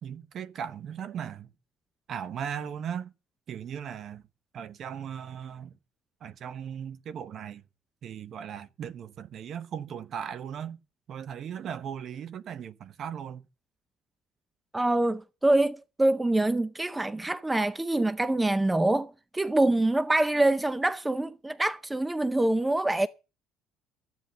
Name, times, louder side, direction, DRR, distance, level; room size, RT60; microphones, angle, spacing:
voice 1, 0.0-1.5 2.1-3.1 3.5-4.2 4.5-5.8 6.2-7.6 8.0-10.8 11.1-13.5, right 8 dB, 45° right, 1.0 m, -37 dB
voice 2, 14.7-23.1, right 2 dB, 10° right, 0.6 m, -25 dB
14.0 x 8.1 x 6.8 m
cardioid pair, 130°, 0 cm